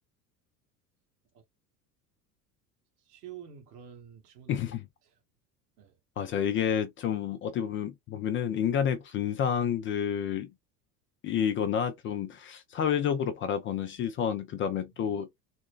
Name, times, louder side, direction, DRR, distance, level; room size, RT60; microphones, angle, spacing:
voice 1, 3.0-4.6 5.8-6.0 14.6-15.4, right 9 dB, 65° right, 1.2 m, -49 dB
voice 2, 4.5-4.8 6.2-10.5 11.2-15.3, left 8 dB, 25° left, 0.4 m, -29 dB
4.1 x 2.1 x 2.4 m
figure-of-eight pair, 75°, 49 cm